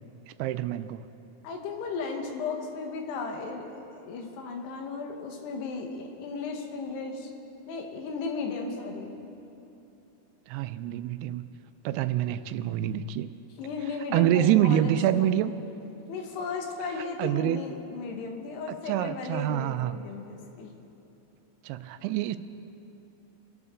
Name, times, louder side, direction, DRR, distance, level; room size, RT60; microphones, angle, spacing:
voice 1, 0.4-1.0 10.5-11.5 11.9-13.3 14.1-15.5 17.2-17.6 18.9-20.0 21.6-22.4, right 12 dB, 85° right, 12 dB, 2.6 m, -26 dB
voice 2, 1.4-7.3 7.7-9.1 13.6-15.3 16.1-20.7, left 4 dB, 90° left, 2 dB, 3.4 m, -35 dB
24.0 x 12.5 x 3.7 m, 2.8 s
omnidirectional pair, 4.6 m